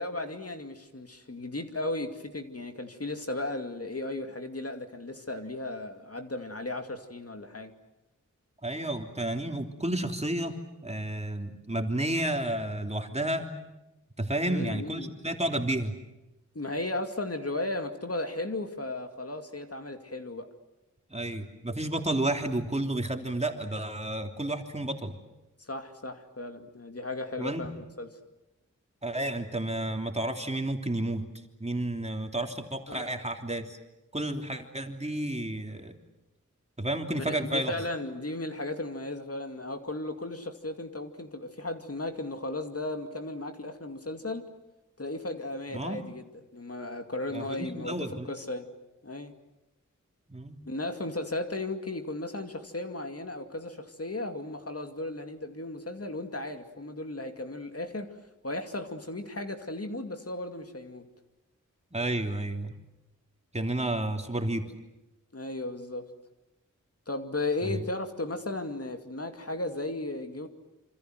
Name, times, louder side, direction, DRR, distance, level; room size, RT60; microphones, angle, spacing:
voice 1, 0.0-7.7 14.4-15.1 16.5-20.5 25.7-28.2 32.9-33.1 37.2-44.5 45.0-48.7 49.0-49.3 50.7-58.2 58.4-61.1 65.3-66.1 67.1-70.5, left 2 dB, 45° left, 6 dB, 2.4 m, -35 dB
voice 2, 8.6-10.6 10.8-13.5 14.2-15.9 21.1-25.1 27.4-27.7 29.0-31.2 31.6-33.8 34.1-35.9 36.8-37.7 45.7-46.0 47.3-48.3 50.3-50.6 61.9-62.7 63.5-64.6 67.6-67.8, right 1 dB, 20° right, 4 dB, 3.2 m, -31 dB
27.0 x 26.0 x 7.9 m, 0.98 s
wide cardioid pair, 60°, 32 cm